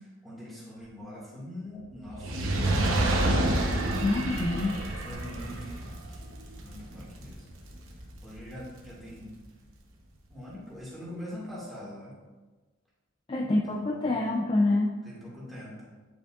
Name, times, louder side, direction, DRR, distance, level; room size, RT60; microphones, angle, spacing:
voice 1, 0.2-2.6 2.9-3.4 5.0-6.2 6.6-7.4 8.2-9.3 10.3-12.1 13.4-14.4 15.0-15.8, equal, ahead, -7 dB, 1.9 m, -43 dB
Fire, 2.1-8.5 9.2-9.3, right 1 dB, 75° right, 1.0 m, -29 dB
voice 2, 4.0-4.8 13.3-14.9, left 2 dB, 25° left, 0 dB, 0.3 m, -26 dB
9.1 x 5.3 x 2.4 m, 1.3 s
head